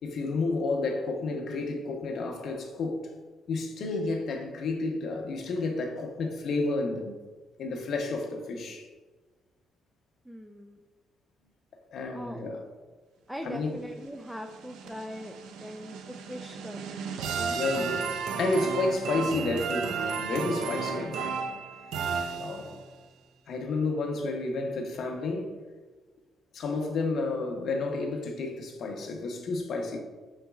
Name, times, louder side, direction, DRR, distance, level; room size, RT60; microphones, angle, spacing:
voice 1, 0.0-3.1 3.5-7.1 7.6-8.9 11.9-12.6 13.4-13.8 17.5-17.9 18.3-21.4 22.4-22.8 23.5-25.6 26.5-30.0, left 3 dB, 65° left, 0.8 m, -31 dB
voice 2, 10.3-10.8 12.1-12.6 13.3-17.1 17.3-18.1, equal, ahead, 0.3 m, -42 dB
sound 1, 14.0-22.9, right 6 dB, 90° right, 0.4 m, -34 dB
5.7 x 4.0 x 2.3 m
cardioid pair, 90°, 0 cm